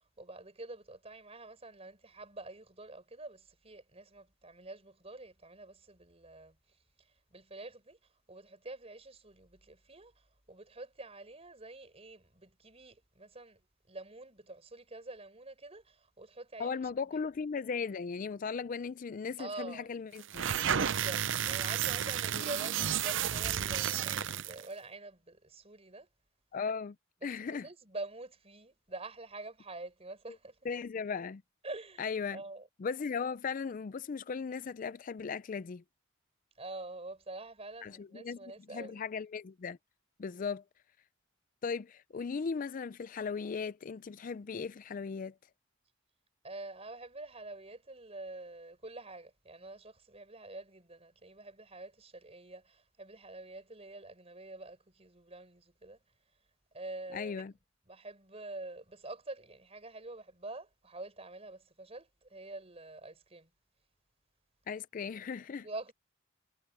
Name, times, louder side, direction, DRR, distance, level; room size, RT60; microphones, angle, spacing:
voice 1, 0.2-6.6 7.3-8.0 8.3-10.1 10.5-13.6 13.9-16.8 19.4-19.9 20.7-26.1 27.2-30.6 31.6-32.7 36.6-39.0 46.4-56.0 56.7-57.4 57.9-63.5 65.6-65.9, right 2 dB, 30° right, 5.1 m, -46 dB
voice 2, 16.6-20.5 22.3-22.4 26.5-27.0 27.2-27.7 30.6-31.4 32.0-32.4 32.8-35.8 37.8-39.8 40.2-40.6 41.6-45.3 57.1-57.5 64.7-65.7, left 5 dB, 40° left, 0.4 m, -37 dB
sound 1, 20.2-24.6, right 9 dB, 65° right, 0.7 m, -32 dB
head